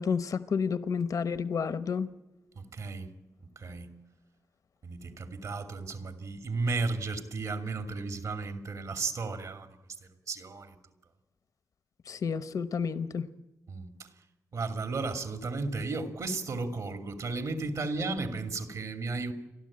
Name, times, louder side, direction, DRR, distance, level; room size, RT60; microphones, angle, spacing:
voice 1, 0.0-2.1 12.1-13.3, left 6 dB, 80° left, 13 dB, 0.9 m, -30 dB
voice 2, 2.5-3.1 3.4-4.0 4.8-10.9 13.7-14.1 14.5-19.3, right 3 dB, 80° right, 7 dB, 2.6 m, -34 dB
29.5 x 12.5 x 8.7 m, 1.1 s
cardioid pair, 80°, 6 cm